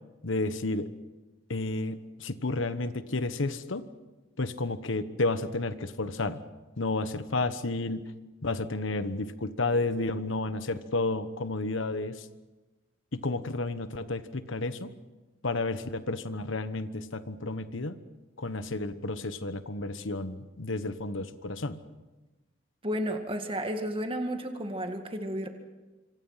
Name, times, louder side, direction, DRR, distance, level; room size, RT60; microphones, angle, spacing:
voice 1, 0.2-0.9 1.5-3.9 4.4-6.4 6.8-8.1 8.4-12.3 13.1-14.9 15.4-18.0 18.4-21.8, left 2 dB, 75° left, 12 dB, 1.3 m, -31 dB
voice 2, 22.8-25.5, equal, 25° right, 5 dB, 1.9 m, -32 dB
26.0 x 26.0 x 5.8 m, 1.2 s
head